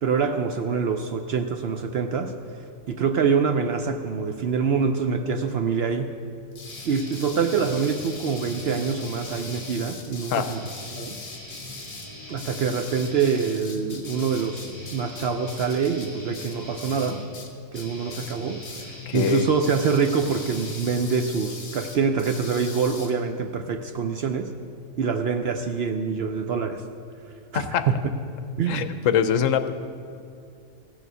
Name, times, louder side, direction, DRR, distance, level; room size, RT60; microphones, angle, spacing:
voice 1, 0.0-2.3 2.9-6.1 6.9-10.6 10.9-11.2 12.3-17.2 17.7-24.5 25.0-26.8 27.5-28.0 28.6-28.9, right 5 dB, 60° right, 6 dB, 0.7 m, -25 dB
sound 1, 6.5-17.5 17.7-18.4 18.6-18.9 19.1-23.1, left 3 dB, 40° left, 1.3 m, -41 dB
sound 2, 6.7-9.8 10.3-21.5, left 1 dB, 10° left, 3.1 m, -42 dB
voice 2, 19.1-19.5 27.5-27.8 28.7-29.7, left 8 dB, 70° left, 10 dB, 0.9 m, -23 dB
15.5 x 6.8 x 6.1 m, 2.4 s
omnidirectional pair, 1.4 m